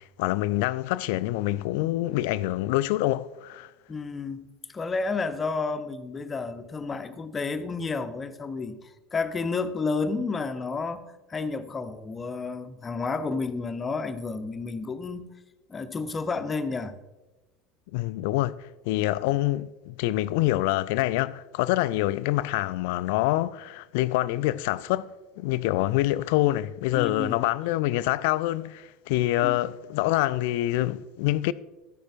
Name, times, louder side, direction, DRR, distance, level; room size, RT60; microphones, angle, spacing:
voice 1, 0.0-3.7 17.9-18.6 18.8-31.5, left 16 dB, 60° left, 0.3 m, -26 dB
voice 2, 3.9-15.3 15.7-17.0 26.9-27.4 29.4-29.6, left 4 dB, 25° left, 0.7 m, -31 dB
12.5 x 10.0 x 2.5 m
figure-of-eight pair, 70°, 0 cm